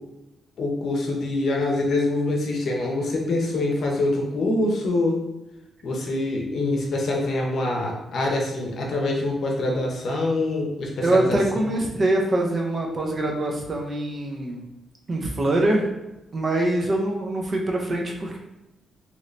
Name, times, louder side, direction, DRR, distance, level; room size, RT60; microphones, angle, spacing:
voice 1, 0.6-5.2 5.8-11.4 11.7-11.8, left 2 dB, 55° left, 0 dB, 0.7 m, -25 dB
voice 2, 11.0-14.6 15.1-15.9 16.3-18.4, right 1 dB, 30° right, 1 dB, 0.5 m, -24 dB
2.9 x 2.6 x 3.2 m, 0.96 s
cardioid pair, 155°, 0 cm